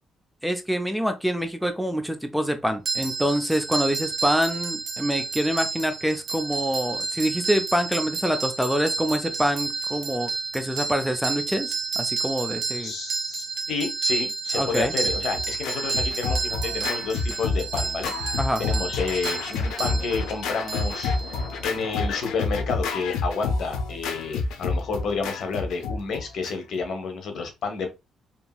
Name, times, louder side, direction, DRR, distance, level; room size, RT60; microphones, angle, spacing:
voice 1, 0.4-12.9 14.5-14.9 18.4-18.6, equal, ahead, 0.4 m, -26 dB
sound 1, 2.9-21.6, right 4 dB, 60° right, 0.9 m, -31 dB
voice 2, 12.8-18.1 18.6-27.9, left 4 dB, 65° left, 0.8 m, -30 dB
Scratching (performance technique), 14.7-26.8, left 4 dB, 90° left, 0.4 m, -29 dB
2.8 x 2.6 x 2.2 m
cardioid pair, 90°, 0 cm